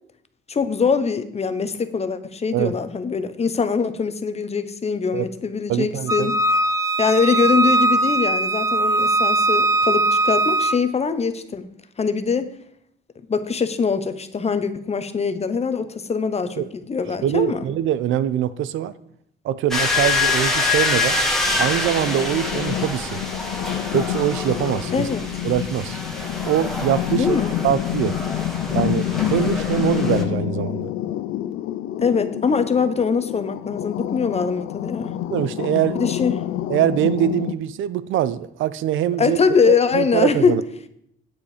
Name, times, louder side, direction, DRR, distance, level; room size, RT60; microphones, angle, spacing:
voice 1, 0.5-6.6 7.0-11.7 12.0-12.5 13.3-17.6 24.9-25.3 27.2-27.5 32.0-35.2 35.9-36.4 39.2-40.6, left 5 dB, 30° left, 11 dB, 0.9 m, -22 dB
voice 2, 5.7-6.4 16.6-16.7 17.2-19.0 19.4-21.2 21.6-23.2 23.9-25.1 25.4-26.0 26.5-27.4 27.6-28.2 28.7-30.9 35.3-36.1 36.7-39.4 39.7-40.6, right 11 dB, 80° right, 16 dB, 0.6 m, -23 dB
Wind instrument woodwind instrument, 6.1-10.8, right 2 dB, 15° right, 0.7 m, -20 dB
sound 1, 19.7-30.2, left 3 dB, ahead, 1.8 m, -26 dB
sound 2, 21.5-37.5, left 13 dB, 90° left, 0.5 m, -28 dB
9.0 x 8.2 x 5.0 m, 0.72 s
cardioid pair, 90°, 20 cm